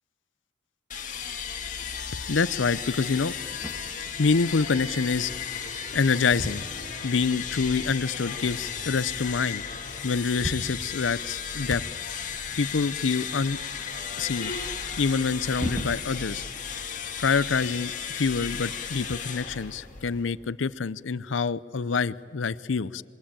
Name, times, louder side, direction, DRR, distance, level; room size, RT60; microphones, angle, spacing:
sound 1, 0.9-20.4, left 7 dB, 45° left, 2.0 m, -35 dB
voice 1, 2.3-3.3 4.2-5.6 5.9-6.6 7.0-9.6 10.0-11.8 12.6-13.6 14.2-14.5 15.0-16.4 17.2-23.0, left 5 dB, 90° left, 18 dB, 0.6 m, -26 dB
sound 2, 3.0-6.0 6.3-8.0 8.6-8.7 8.9-9.0 9.8-9.9 10.1-12.5 15.0-16.5 16.8-19.1 20.1-20.2 21.2-21.3, equal, 15° right, 1.7 m, -40 dB
27.0 x 22.5 x 8.9 m, 2.4 s
head